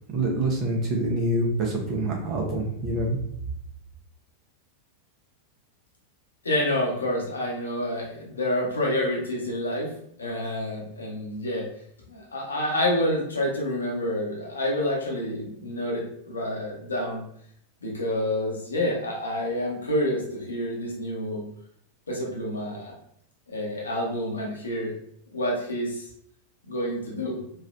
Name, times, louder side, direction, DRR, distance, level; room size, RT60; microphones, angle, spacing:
voice 1, 0.1-3.2, right 1 dB, 30° right, -1 dB, 0.9 m, -26 dB
voice 2, 6.4-9.9 10.2-11.7 12.1-17.2 17.8-21.4 22.1-22.9 23.5-24.9 25.3-26.0 26.7-27.4, left 1 dB, 75° left, -2 dB, 0.9 m, -28 dB
3.1 x 2.6 x 2.5 m, 0.68 s
figure-of-eight pair, 90°, 0 cm